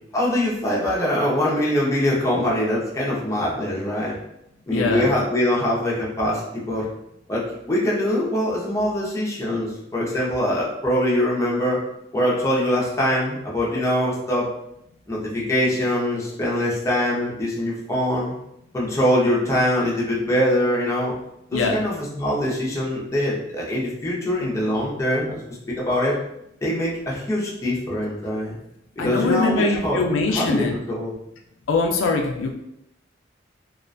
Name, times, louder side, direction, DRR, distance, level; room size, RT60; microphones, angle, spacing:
voice 1, 0.1-4.1 4.7-6.9 7.3-11.8 12.1-14.5 15.1-18.3 18.7-21.1 21.5-25.4 25.7-26.2 26.6-28.5 29.0-30.0 30.3-31.1, left 1 dB, 15° left, -5 dB, 0.5 m, -23 dB
voice 2, 4.7-5.1 21.5-21.8 29.0-30.8 31.7-32.5, left 3 dB, 80° left, 2 dB, 0.4 m, -22 dB
2.3 x 2.1 x 2.5 m, 0.81 s
head